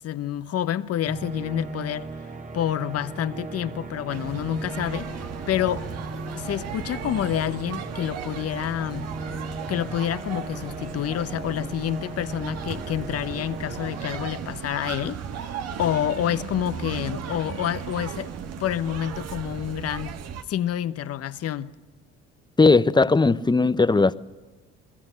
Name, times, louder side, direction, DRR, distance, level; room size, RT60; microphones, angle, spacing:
voice 1, 0.0-2.1 2.5-5.1 5.5-5.9 6.3-9.1 9.7-15.2 15.8-18.3 18.6-20.2 20.5-21.7, left 11 dB, 55° left, 1.1 m, -28 dB
sound 1, 1.0-14.1, right 2 dB, 25° right, 2.1 m, -37 dB
sound 2, 4.1-20.4, right 7 dB, 55° right, 1.6 m, -36 dB
voice 2, 22.6-24.1, left 3 dB, 15° left, 0.9 m, -18 dB
29.5 x 21.5 x 6.4 m
supercardioid pair, 70°, 30 cm